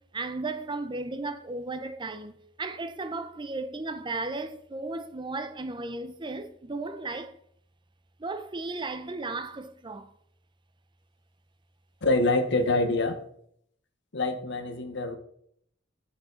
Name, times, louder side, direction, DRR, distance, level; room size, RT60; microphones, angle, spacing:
voice 1, 0.1-7.3 8.2-10.1, right 3 dB, 25° right, 0.6 m, -35 dB
voice 2, 12.0-13.2 14.1-15.2, left 2 dB, 65° left, 1.1 m, -25 dB
8.4 x 7.9 x 3.9 m
head